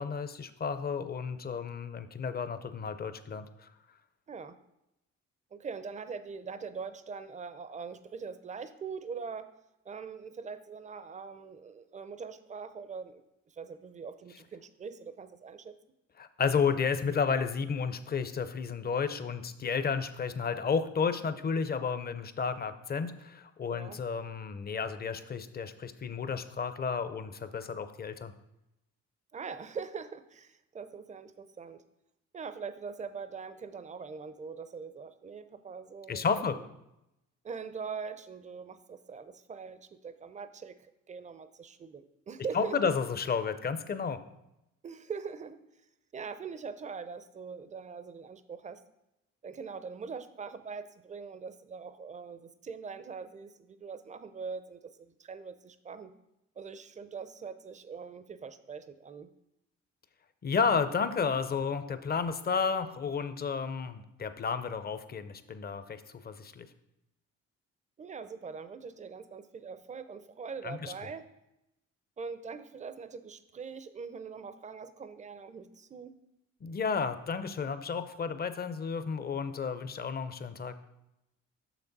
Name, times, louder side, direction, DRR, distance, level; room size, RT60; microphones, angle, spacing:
voice 1, 0.0-3.5 16.2-28.3 36.1-36.6 42.5-44.2 60.4-66.7 70.6-70.9 76.6-80.7, left 5 dB, 30° left, 11 dB, 0.5 m, -32 dB
voice 2, 5.5-9.5 9.8-15.8 23.7-24.0 29.3-31.8 32.3-36.7 37.4-42.8 44.8-45.6 46.1-48.8 49.4-56.2 56.6-59.3 68.0-71.3 72.2-76.1, right 5 dB, 25° right, 12 dB, 0.5 m, -42 dB
6.5 x 5.9 x 4.0 m, 0.88 s
cardioid pair, 90°, 30 cm